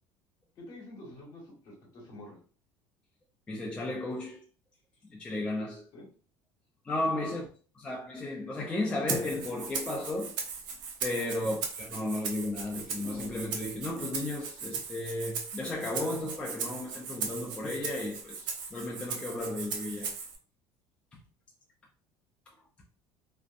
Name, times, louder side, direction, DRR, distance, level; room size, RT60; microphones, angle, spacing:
voice 1, 0.6-2.4 5.9-6.0 7.2-7.3 11.4-11.6, left 1 dB, 50° left, 1.2 m, -47 dB
voice 2, 3.5-4.4 5.1-5.8 6.8-7.4 7.8-10.4 11.0-20.1 21.1-21.2, left 2 dB, 15° left, 0.4 m, -34 dB
Rattle (instrument), 9.1-20.4, right 5 dB, 60° right, 0.6 m, -38 dB
2.5 x 2.1 x 2.5 m
cardioid pair, 145°, 9 cm